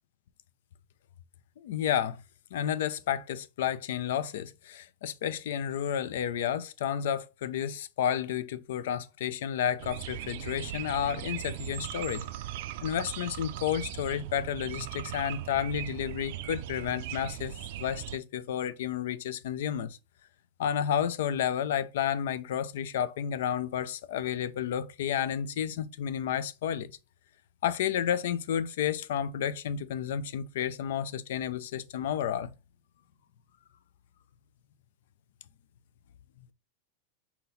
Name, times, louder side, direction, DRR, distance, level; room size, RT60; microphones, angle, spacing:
voice 1, 1.6-2.2 2.5-12.3 12.8-20.0 20.6-26.9 27.6-32.5, left 9 dB, 70° left, 0.4 m, -31 dB
sound 1, 9.8-18.2, right 13 dB, 65° right, 0.3 m, -39 dB
4.0 x 2.8 x 3.9 m
hypercardioid pair, 115°, 0 cm